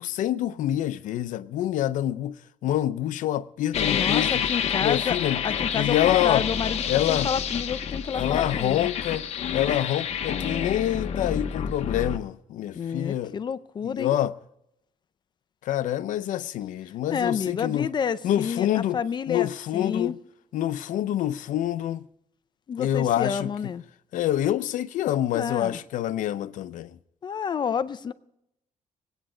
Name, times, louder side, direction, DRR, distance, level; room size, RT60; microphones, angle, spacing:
voice 1, 0.0-4.4 4.8-5.4 5.7-6.5 6.9-7.3 8.1-9.3 9.5-13.4 13.8-14.3 15.6-17.9 18.2-19.0 19.3-20.2 20.5-22.1 22.8-23.5 24.1-27.0, left 12 dB, 85° left, 0.6 m, -26 dB
sound 1, 3.7-12.2, left 8 dB, 55° left, 0.9 m, -28 dB
voice 2, 3.9-5.2 5.4-6.8 7.1-8.9 12.7-14.2 17.1-19.5 19.7-20.1 22.7-23.8 25.3-25.8 27.2-28.1, left 7 dB, 35° left, 0.5 m, -29 dB
22.0 x 9.0 x 4.9 m
cardioid pair, 160°, 13 cm